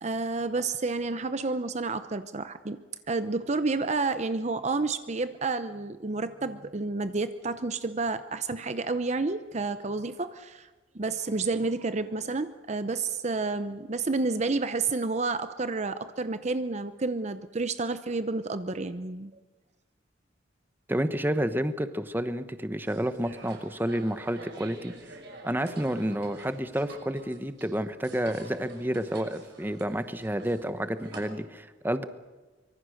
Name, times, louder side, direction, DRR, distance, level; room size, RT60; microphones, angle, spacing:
voice 1, 0.0-2.8 3.1-10.7 10.9-19.3, right 3 dB, 35° right, 11 dB, 0.7 m, -30 dB
voice 2, 20.9-25.2 25.4-32.0, right 1 dB, 10° right, 11 dB, 1.0 m, -30 dB
sound 1, 22.9-31.3, right 2 dB, 60° right, 5.8 m, -48 dB
24.5 x 23.0 x 6.5 m, 1.3 s
head